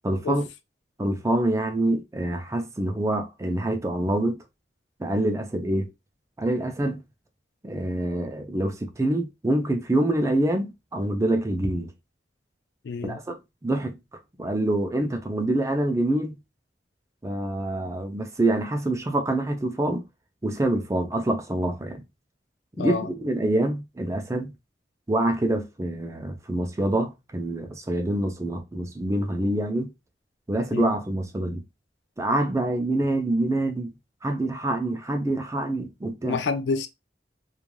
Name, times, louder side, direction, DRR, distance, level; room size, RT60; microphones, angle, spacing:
voice 1, 0.0-0.4 1.0-4.4 5.0-5.9 6.4-7.0 7.6-11.9 13.0-13.4 13.6-14.0 14.4-16.4 17.2-20.1 20.4-22.0 22.8-24.5 25.1-29.9 30.5-31.6 32.2-33.9 34.2-36.4, right 1 dB, 15° right, 0.4 m, -26 dB
voice 2, 12.8-13.2 22.8-23.1 30.7-31.0 36.2-36.9, left 4 dB, 75° left, 0.4 m, -28 dB
3.1 x 2.3 x 2.2 m
head